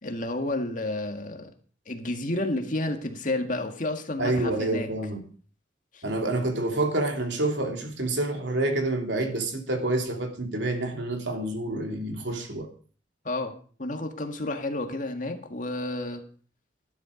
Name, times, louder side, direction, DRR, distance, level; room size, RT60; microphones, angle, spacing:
voice 1, 0.0-1.5 1.9-4.9 5.9-6.0 13.3-13.5 13.8-16.2, left 2 dB, 45° left, 2.0 m, -31 dB
voice 2, 4.2-5.2 6.0-12.7, right 2 dB, 75° right, 2.8 m, -28 dB
13.5 x 12.0 x 5.1 m
head